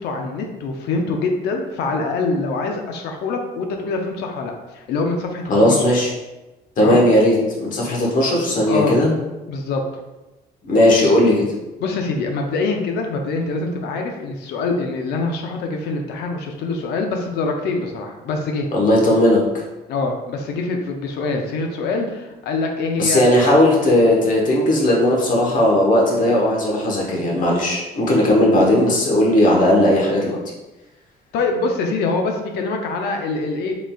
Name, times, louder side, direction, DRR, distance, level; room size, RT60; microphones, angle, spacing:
voice 1, 0.0-5.8 6.8-7.0 8.7-9.0 9.5-9.8 11.8-18.7 19.9-23.2 23.7-23.8 31.3-33.7, left 3 dB, 75° left, 3 dB, 0.6 m, -24 dB
voice 2, 5.5-6.1 6.8-9.1 10.6-11.4 18.7-19.4 23.0-30.4, left 1 dB, 50° left, -3 dB, 1.2 m, -16 dB
3.9 x 3.7 x 2.3 m, 1.0 s
cardioid pair, 110°, 17 cm